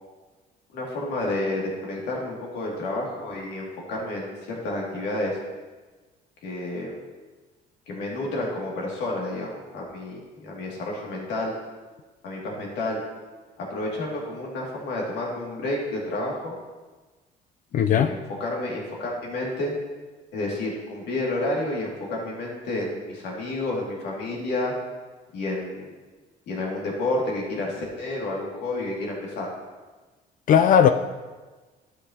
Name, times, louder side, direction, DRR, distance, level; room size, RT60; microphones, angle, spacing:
voice 1, 0.7-5.4 6.4-6.9 7.9-11.5 12.2-13.0 13.6-16.5 17.7-19.7 20.3-24.7 25.3-25.9 26.5-29.5, left 2 dB, 85° left, -2 dB, 2.3 m, -30 dB
voice 2, 17.7-18.2 30.5-30.9, left 8 dB, 55° left, 8 dB, 0.4 m, -17 dB
12.0 x 6.6 x 2.8 m, 1.3 s
cardioid pair, 110°, 17 cm